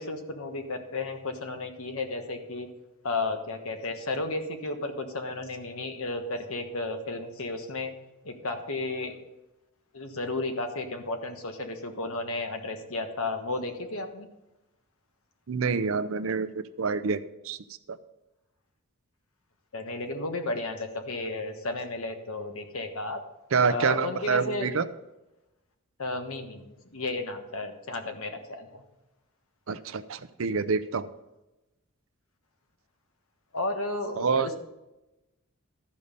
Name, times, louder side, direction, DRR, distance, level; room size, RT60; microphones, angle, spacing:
voice 1, 0.0-2.7 3.0-7.9 8.2-9.2 9.9-14.3 19.7-23.2 23.7-24.7 26.0-28.8 33.5-34.5, left 2 dB, 80° left, 6 dB, 1.3 m, -33 dB
voice 2, 15.5-17.6 17.9-18.0 23.5-24.9 29.7-31.1 34.1-34.5, right 5 dB, 70° right, 14 dB, 0.5 m, -27 dB
12.5 x 5.4 x 6.8 m, 1.0 s
head